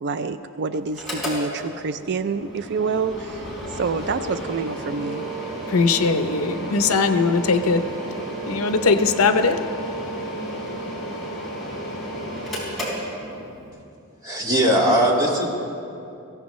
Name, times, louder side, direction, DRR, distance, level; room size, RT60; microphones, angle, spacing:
voice 1, 0.0-5.2, right 4 dB, 50° right, 10 dB, 0.4 m, -27 dB
Mechanical fan, 0.9-13.7, right 1 dB, ahead, 4.2 m, -32 dB
voice 2, 5.7-7.8 8.5-9.6, left 4 dB, 75° left, 8 dB, 0.7 m, -20 dB
voice 3, 14.2-15.5, right 1 dB, 15° right, -3 dB, 2.0 m, -19 dB
22.5 x 15.5 x 3.1 m, 2.6 s
head